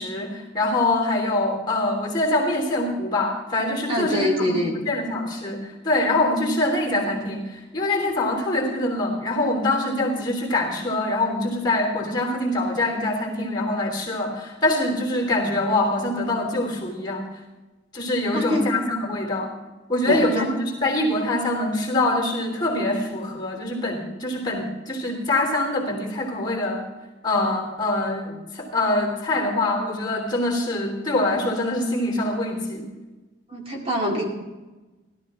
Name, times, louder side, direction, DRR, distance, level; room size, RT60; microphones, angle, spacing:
voice 1, 0.0-4.5 4.8-17.3 17.9-19.5 19.9-26.9 27.2-32.9, left 2 dB, 25° left, 0 dB, 3.2 m, -24 dB
voice 2, 3.9-4.9 18.3-18.8 20.1-20.5 33.5-34.3, left 1 dB, 30° right, -1 dB, 2.3 m, -25 dB
16.5 x 13.0 x 3.7 m, 1.2 s
head